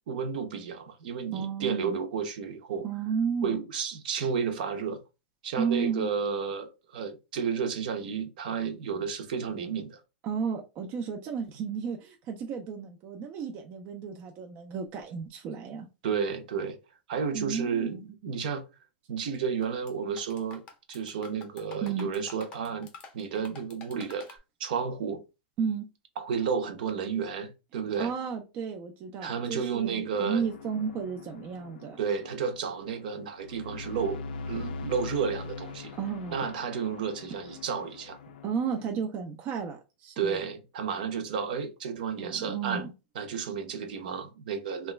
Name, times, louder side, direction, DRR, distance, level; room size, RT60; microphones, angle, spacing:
voice 1, 0.1-2.9 3.4-5.0 5.4-10.0 16.0-16.8 17.1-18.6 19.1-20.6 20.9-22.9 23.1-25.2 26.2-28.1 29.2-30.4 32.0-35.9 36.3-38.2 40.2-42.8 43.2-44.9, right 6 dB, 60° right, 0.7 m, -32 dB
voice 2, 1.3-2.0 2.8-3.6 5.6-6.1 10.2-15.9 17.3-18.0 21.8-22.1 25.6-25.9 28.0-32.0 35.9-36.4 38.4-40.4 42.2-42.9, right 6 dB, 30° right, 0.4 m, -33 dB
sound 1, 19.3-19.9 20.2-24.4, left 4 dB, 20° left, 0.6 m, -48 dB
sound 2, 30.1-38.9, left 4 dB, 65° left, 0.4 m, -42 dB
2.9 x 2.3 x 3.1 m
supercardioid pair, 165°, 5 cm